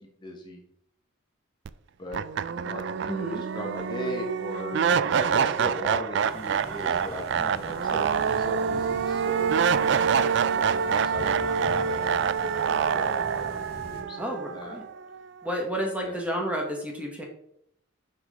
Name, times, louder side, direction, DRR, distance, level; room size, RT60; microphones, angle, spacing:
voice 1, 0.2-0.6 2.0-2.2 2.5-13.5 13.9-14.8 16.0-16.2, equal, 20° left, 1 dB, 1.2 m, -38 dB
sound 1, 1.6-1.7 2.1-15.2, right 6 dB, 55° right, 0.3 m, -26 dB
voice 2, 3.1-3.4 14.2-14.8 15.4-17.2, equal, 5° right, 0 dB, 1.3 m, -31 dB
sound 2, 6.2-14.0, left 1 dB, 45° left, 1.6 m, -44 dB
6.0 x 5.8 x 4.9 m, 0.75 s
head